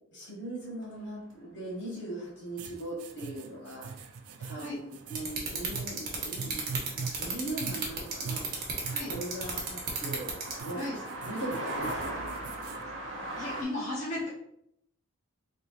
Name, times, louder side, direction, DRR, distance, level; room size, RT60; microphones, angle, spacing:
voice 1, 0.1-3.9 4.4-6.6 6.9-8.4 9.1-10.3 10.6-12.2, right 1 dB, 55° left, -5 dB, 1.4 m, -39 dB
sound 1, 0.8-0.9 1.3-1.4 3.9-4.1 4.4-4.5 4.8-13.6, right 1 dB, 60° right, 0.7 m, -41 dB
sound 2, 2.6-12.8, right 5 dB, 90° right, 0.4 m, -42 dB
sound 3, 5.2-10.6, right 6 dB, 45° right, 1.1 m, -32 dB
voice 2, 13.4-14.3, left 1 dB, 35° left, -8 dB, 1.2 m, -35 dB
4.1 x 3.4 x 2.6 m, 0.74 s
head